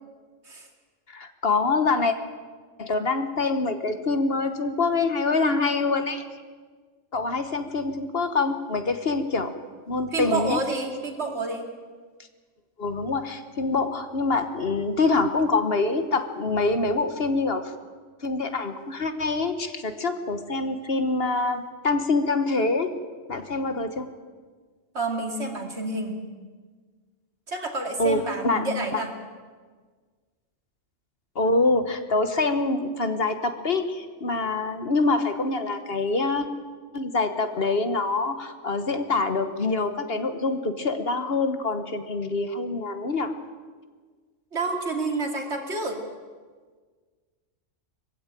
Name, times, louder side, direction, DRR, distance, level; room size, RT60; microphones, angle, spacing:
voice 1, 1.1-2.1 2.8-6.2 7.1-9.5 9.9-10.6 12.8-17.7 18.2-22.9 23.3-24.1 28.0-29.0 31.3-36.5 36.9-43.3, left 3 dB, 55° left, 8 dB, 1.4 m, -25 dB
voice 2, 10.1-11.7 24.9-26.2 27.5-29.1 44.5-46.0, right 3 dB, 60° right, 3 dB, 2.8 m, -29 dB
21.0 x 15.5 x 9.1 m, 1.5 s
omnidirectional pair, 1.3 m